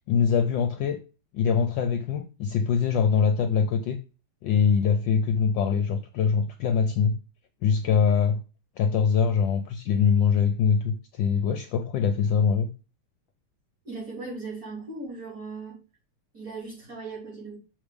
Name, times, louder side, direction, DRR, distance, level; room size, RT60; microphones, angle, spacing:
voice 1, 0.1-1.0 1.3-4.0 4.4-7.2 7.6-8.4 8.8-12.7, left 6 dB, 70° left, 7 dB, 1.2 m, -23 dB
voice 2, 13.8-15.8 16.3-17.6, right 3 dB, 40° right, -4 dB, 4.3 m, -38 dB
6.4 x 3.3 x 5.1 m, 0.33 s
omnidirectional pair, 2.4 m